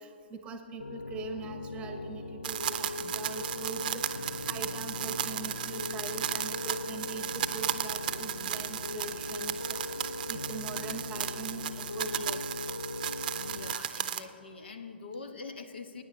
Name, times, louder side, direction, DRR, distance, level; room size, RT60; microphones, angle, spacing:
voice 1, 0.0-12.5, right 3 dB, 20° right, 6 dB, 1.1 m, -42 dB
Piano, 0.8-13.7, left 3 dB, 80° left, 0.4 m, -40 dB
sound 1, 2.4-14.2, right 10 dB, 45° right, 0.6 m, -35 dB
voice 2, 13.3-16.0, left 4 dB, 60° left, 7 dB, 1.2 m, -44 dB
23.5 x 9.9 x 4.0 m, 2.6 s
figure-of-eight pair, 120°, 6 cm